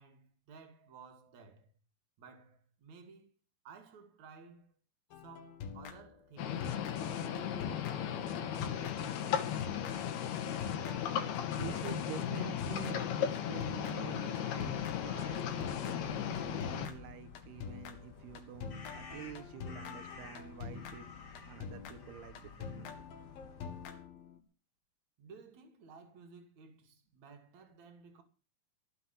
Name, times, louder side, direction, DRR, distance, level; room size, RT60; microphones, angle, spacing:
voice 1, 0.0-1.7 2.2-3.3 3.7-4.7 5.2-6.7 25.2-28.2, right 5 dB, 50° right, 3.8 m, -55 dB
sound 1, 5.1-6.3 6.6-24.4, left 6 dB, 70° left, 3.7 m, -46 dB
sound 2, 6.4-16.9, left 9 dB, 85° left, 3.8 m, -36 dB
voice 2, 11.3-14.7 15.0-21.1 21.5-23.0, right 10 dB, 90° right, 3.3 m, -48 dB
sound 3, 14.5-23.9, left 3 dB, 35° left, 2.2 m, -52 dB
17.5 x 8.0 x 7.3 m
omnidirectional pair, 4.4 m